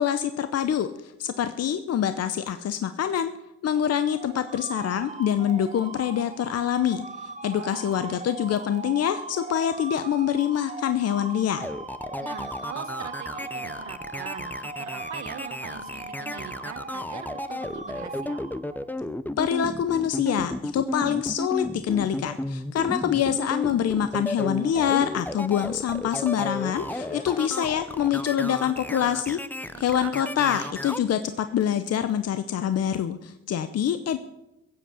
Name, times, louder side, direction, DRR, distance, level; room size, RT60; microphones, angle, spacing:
voice 1, 0.0-3.3 3.6-11.7 19.4-29.4 29.8-34.2, left 9 dB, 55° left, 11 dB, 0.8 m, -25 dB
sound 1, 3.7-19.0, right 3 dB, 25° right, 1.3 m, -39 dB
voice 2, 7.5-8.1 12.2-18.4 29.7-30.7, right 8 dB, 70° right, 9 dB, 1.5 m, -42 dB
sound 2, 11.6-31.0, left 1 dB, 5° left, 0.6 m, -33 dB
sound 3, 26.1-32.0, left 3 dB, 25° left, 2.5 m, -47 dB
16.0 x 7.7 x 8.1 m, 0.95 s
cardioid pair, 90°, 30 cm